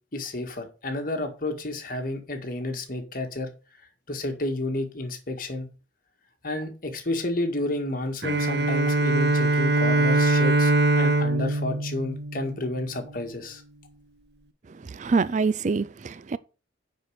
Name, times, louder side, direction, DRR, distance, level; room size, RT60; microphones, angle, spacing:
voice 1, 0.1-3.5 4.1-5.7 6.4-13.6, left 2 dB, 50° left, 1.8 m, -31 dB
Bowed string instrument, 8.2-12.9, right 2 dB, 60° right, 0.8 m, -22 dB
voice 2, 14.9-16.4, right 4 dB, 40° right, 0.4 m, -25 dB
9.3 x 4.5 x 6.5 m
head